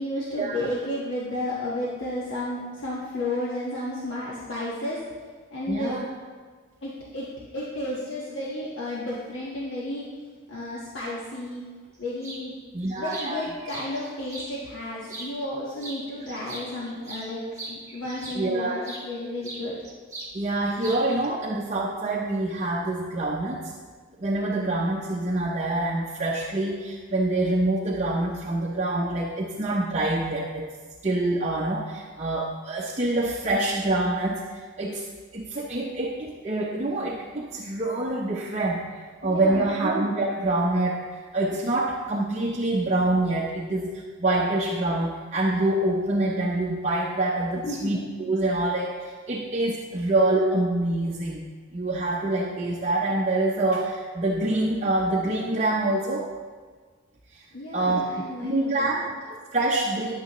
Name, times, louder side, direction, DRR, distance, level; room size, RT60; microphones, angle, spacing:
voice 1, 0.0-5.0 5.5-6.0 6.8-7.3 7.5-10.0 10.5-11.6 12.0-12.6 13.0-17.4 17.7-19.8 39.2-39.7 47.6-48.0 57.5-59.1, left 1 dB, 60° left, -7 dB, 1.4 m, -32 dB
voice 2, 5.7-6.1 12.7-13.4 18.3-18.9 20.3-23.6 24.2-30.7 31.0-35.0 35.3-51.4 51.7-56.3 57.3-57.4 57.7-60.1, right 2 dB, 30° right, -3 dB, 0.6 m, -26 dB
sound 1, 12.2-12.4 12.9-14.5 15.0-15.5 15.8-19.1 19.4-20.3 20.6-21.3, right 2 dB, 15° right, 1.3 m, -40 dB
10.5 x 9.0 x 3.1 m, 1.5 s
head